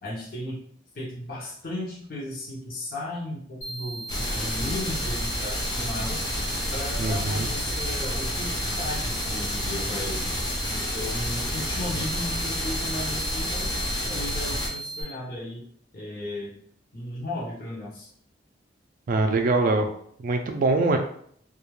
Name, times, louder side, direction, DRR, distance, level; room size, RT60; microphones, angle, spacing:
voice 1, 0.0-0.6 0.9-6.3 6.7-10.3 10.7-13.7 14.1-15.6 15.9-16.5 16.9-18.1, left 1 dB, 50° left, -5 dB, 0.7 m, -35 dB
sound 1, 3.6-15.0, right 2 dB, 75° left, 1.1 m, -37 dB
sound 2, 4.1-14.7, left 1 dB, 20° left, 0.5 m, -30 dB
voice 2, 7.0-7.5 19.1-19.9 20.2-21.0, right 3 dB, 50° right, 5 dB, 0.3 m, -23 dB
2.3 x 2.1 x 3.0 m, 0.62 s
head